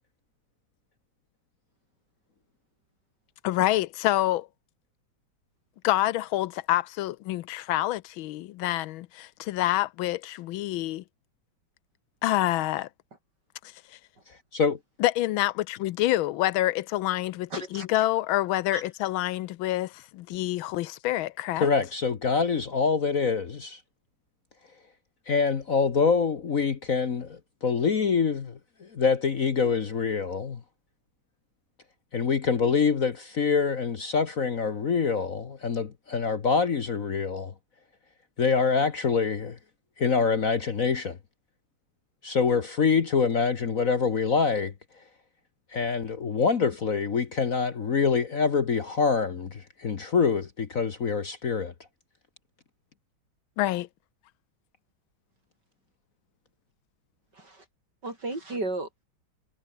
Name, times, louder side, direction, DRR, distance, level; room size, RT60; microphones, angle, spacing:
voice 1, 3.4-4.5 5.8-11.0 12.2-12.9 13.9-14.0 15.0-21.7 53.6-53.9, left 15 dB, 80° left, 1.4 m, -27 dB
voice 2, 17.5-17.9 18.7-18.8 57.3-57.6 58.0-59.0, right 2 dB, 55° right, 6.8 m, -34 dB
voice 3, 21.6-23.8 25.3-30.6 32.1-37.5 38.4-39.6 40.0-41.2 42.2-44.7 45.7-51.7, left 5 dB, 45° left, 1.5 m, -25 dB
omnidirectional pair, 2.2 m